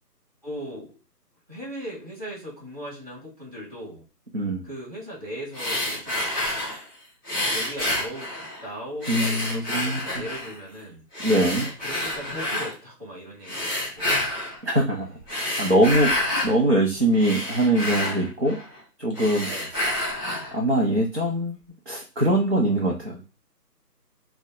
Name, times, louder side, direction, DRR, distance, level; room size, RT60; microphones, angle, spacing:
voice 1, 0.4-0.9 1.5-4.0 4.6-6.5 7.5-11.1 11.8-13.7 14.0-14.1 15.0-15.1 19.5-19.7, equal, 20° right, -5 dB, 1.6 m, -38 dB
Female Heavy Breathing - In Pain, 5.5-6.8 7.3-8.7 9.0-10.6 11.1-12.7 13.4-14.6 15.2-16.6 16.9-18.8 19.1-20.6, left 1 dB, 15° left, 1.1 m, -28 dB
voice 2, 9.1-10.0 11.2-11.7 14.6-18.6 19.0-19.5 20.5-21.6 21.9-23.2, right 1 dB, 40° right, -2 dB, 0.6 m, -23 dB
3.9 x 2.1 x 3.7 m, 0.34 s
hypercardioid pair, 175°, 49 cm